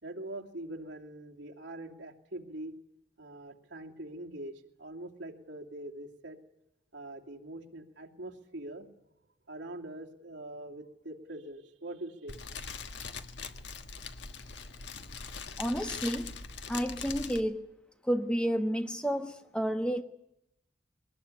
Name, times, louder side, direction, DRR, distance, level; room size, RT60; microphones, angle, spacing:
voice 1, 0.0-2.8 3.2-6.4 6.9-8.9 9.5-12.3, right 1 dB, 80° right, 0 dB, 2.9 m, -43 dB
Fire, 12.3-17.4, left 5 dB, 70° left, 1.5 m, -42 dB
voice 2, 15.6-16.3 16.7-17.7 18.0-20.0, equal, 5° left, 6 dB, 1.1 m, -31 dB
22.5 x 19.5 x 9.9 m, 0.82 s
head